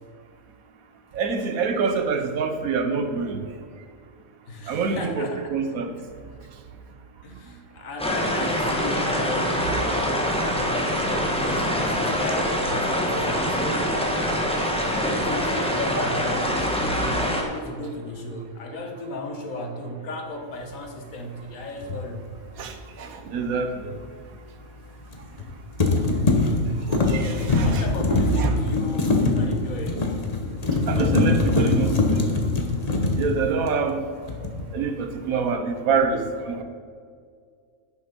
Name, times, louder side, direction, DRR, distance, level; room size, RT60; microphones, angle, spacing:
voice 1, 1.1-3.4 4.7-5.9 9.7-9.9 22.6-24.0 27.1-27.8 28.1-28.5 30.9-32.5 33.1-34.0 34.7-36.6, right 5 dB, 75° right, 7 dB, 1.3 m, -26 dB
voice 2, 4.5-5.6 6.4-6.5 7.2-9.7 10.3-14.0 14.8-22.2 27.2-30.1 31.7-32.2 32.8-32.9, left 1 dB, 70° left, 3 dB, 1.6 m, -35 dB
sound 1, 8.0-17.4, equal, 5° left, 1.1 m, -24 dB
sound 2, 21.8-22.0 25.1-25.5 25.8-34.0 34.3-34.7, left 3 dB, 30° left, 1.0 m, -23 dB
10.5 x 6.4 x 5.2 m, 2.1 s
omnidirectional pair, 1.5 m